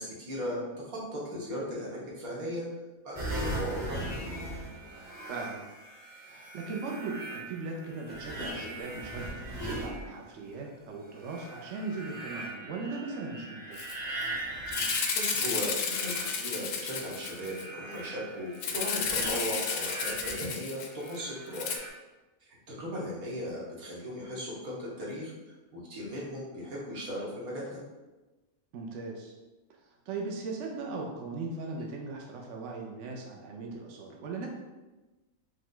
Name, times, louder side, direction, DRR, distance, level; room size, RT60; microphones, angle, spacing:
voice 1, 0.0-2.7 3.0-4.1 14.9-21.7 22.5-25.3 25.7-27.8, equal, 80° right, -5 dB, 1.7 m, -37 dB
sound 1, 3.1-10.5 11.1-20.4 20.9-21.9, right 1 dB, 35° right, 1.2 m, -39 dB
voice 2, 5.3-5.6 6.2-13.9 28.7-29.3 30.1-34.5, right 3 dB, 65° right, 0 dB, 0.9 m, -38 dB
Rattle (instrument), 13.8-13.9 14.2-14.3 14.7-17.6 18.6-21.2 21.5-21.8, left 6 dB, 70° left, 0.9 m, -32 dB
5.0 x 2.2 x 3.8 m, 1.1 s
omnidirectional pair, 1.5 m